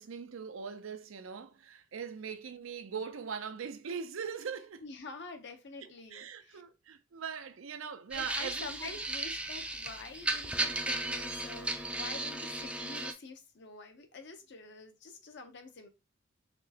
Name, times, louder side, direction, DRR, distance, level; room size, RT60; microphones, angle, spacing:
voice 1, 0.0-4.8 5.8-8.9, right 6 dB, 85° right, 0.5 m, -41 dB
voice 2, 4.8-6.6 8.1-15.9, left 3 dB, 60° left, 0.8 m, -47 dB
sound 1, 8.1-13.1, right 2 dB, 5° right, 0.4 m, -35 dB
4.4 x 3.0 x 2.9 m
head